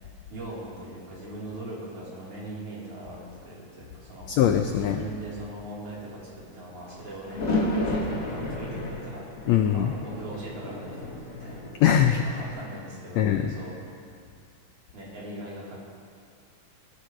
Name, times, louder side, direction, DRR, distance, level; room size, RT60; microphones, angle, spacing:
voice 1, 0.3-4.3 4.8-6.2 6.5-7.4 7.8-9.3 9.6-11.6 12.2-14.1 14.9-15.7, right 1 dB, 60° right, -8 dB, 5.3 m, -40 dB
voice 2, 4.3-5.0 9.5-9.9 11.8-12.2 13.2-13.5, left 10 dB, 85° left, 5 dB, 1.5 m, -21 dB
sound 1, 6.9-12.5, left 1 dB, 45° left, 1.1 m, -32 dB
22.0 x 13.0 x 3.3 m, 2.2 s
omnidirectional pair, 3.8 m